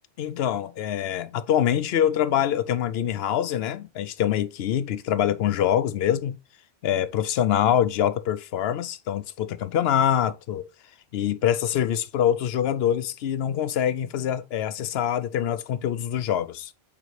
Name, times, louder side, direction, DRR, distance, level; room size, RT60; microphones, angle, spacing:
voice 1, 0.2-6.4 6.8-10.7 11.1-16.7, left 10 dB, 70° left, 0.8 m, -24 dB
8.5 x 3.8 x 3.2 m
omnidirectional pair, 1.1 m